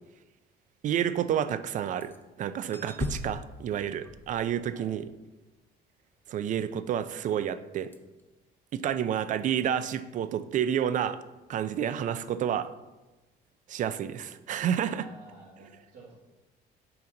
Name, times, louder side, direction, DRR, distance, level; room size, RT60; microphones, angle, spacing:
voice 1, 0.8-2.1 2.4-5.0 6.3-7.9 8.7-11.2 11.5-12.7 13.7-15.1, right 9 dB, 50° right, 13 dB, 0.4 m, -29 dB
sound 1, 1.8-2.2 2.7-5.1 7.9-8.2 9.2-9.4 9.8-9.9 14.7-14.8, left 2 dB, 10° left, 0.6 m, -39 dB
voice 2, 14.9-16.1, right 2 dB, 70° right, -8 dB, 1.9 m, -51 dB
5.8 x 5.1 x 3.8 m, 1.1 s
cardioid pair, 110°, 17 cm